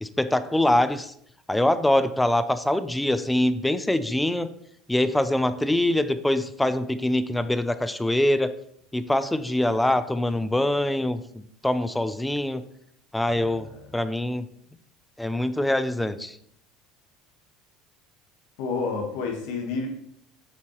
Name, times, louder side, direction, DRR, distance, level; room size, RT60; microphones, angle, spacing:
voice 1, 0.0-1.1 1.5-4.5 4.9-8.5 8.9-11.2 11.6-12.6 13.1-13.7 13.9-14.5 15.2-16.4, left 1 dB, 5° left, 12 dB, 0.5 m, -24 dB
voice 2, 13.3-13.8 18.6-19.9, left 4 dB, 75° left, 3 dB, 1.4 m, -30 dB
7.0 x 4.4 x 3.1 m, 0.70 s
supercardioid pair, 85°, 0 cm